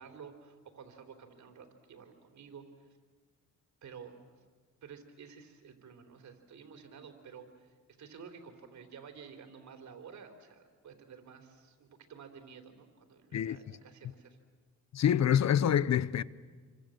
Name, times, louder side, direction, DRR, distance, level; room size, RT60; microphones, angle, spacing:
voice 1, 0.0-2.9 3.8-4.2 4.8-14.4, right 6 dB, 70° right, 3.6 m, -51 dB
voice 2, 14.9-16.2, left 9 dB, 65° left, 0.8 m, -26 dB
28.5 x 24.5 x 7.8 m
cardioid pair, 85°, 30 cm